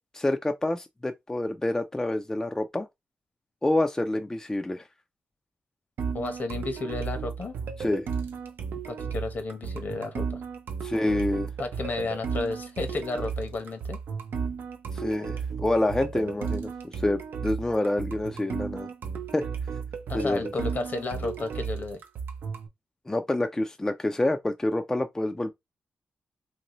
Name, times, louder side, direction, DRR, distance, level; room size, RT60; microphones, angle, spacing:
voice 1, 0.1-2.9 3.6-4.8 7.8-8.1 10.8-11.5 14.9-18.9 19.3-19.5 20.1-20.5 23.1-25.5, left 1 dB, 15° left, 0.4 m, -27 dB
sound 1, 6.0-22.7, right 6 dB, 80° right, 0.6 m, -34 dB
voice 2, 6.1-7.6 8.9-10.4 11.6-14.0 20.1-22.0, left 3 dB, 55° left, 0.9 m, -32 dB
3.0 x 2.7 x 3.0 m
cardioid pair, 80°, 4 cm